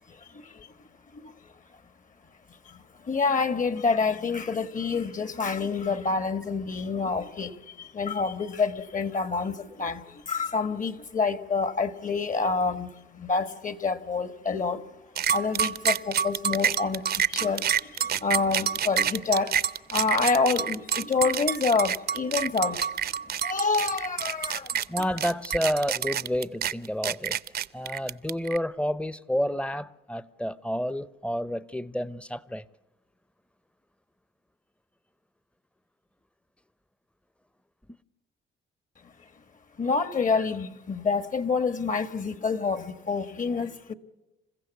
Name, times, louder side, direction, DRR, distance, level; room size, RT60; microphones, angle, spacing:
voice 1, 0.1-0.7 1.1-1.5 2.5-14.9 15.3-19.5 19.9-22.8 23.2-24.8 39.8-43.9, left 4 dB, 40° left, 1.6 m, -28 dB
sound 1, 15.2-28.6, right 8 dB, 55° right, 0.7 m, -27 dB
voice 2, 24.9-27.4 27.7-32.6, equal, 5° left, 0.8 m, -30 dB
28.0 x 15.5 x 8.3 m
cardioid pair, 90°, 20 cm